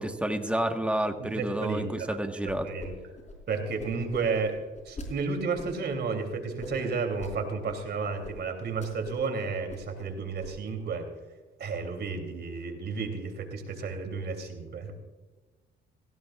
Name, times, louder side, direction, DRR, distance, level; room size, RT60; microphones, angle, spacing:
voice 1, 0.0-2.7, right 1 dB, 5° right, 5 dB, 1.5 m, -30 dB
voice 2, 1.2-2.2 2.6-2.9 3.5-4.6 4.8-11.1 11.6-14.9, right 4 dB, 60° right, 4 dB, 3.2 m, -32 dB
sound 1, 2.5-2.9 3.1-5.1 5.6-6.0 6.6-7.3 7.7-7.8 8.2-8.3 8.6-9.3 9.5-10.1 10.4-10.8, left 1 dB, 35° left, 4.6 m, -42 dB
17.5 x 16.5 x 2.5 m, 1.3 s
cardioid pair, 90°, 20 cm